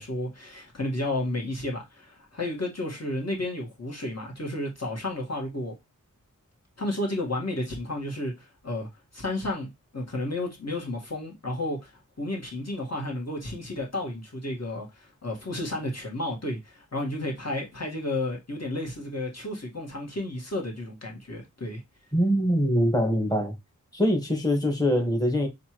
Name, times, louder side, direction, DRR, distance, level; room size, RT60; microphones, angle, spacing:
voice 1, 0.0-5.7 6.8-21.8, left 1 dB, 50° left, 1.7 m, -32 dB
voice 2, 22.1-23.5 23.9-25.5, equal, 10° left, 1.4 m, -23 dB
6.6 x 2.6 x 3.0 m
wide cardioid pair, 65°, 32 cm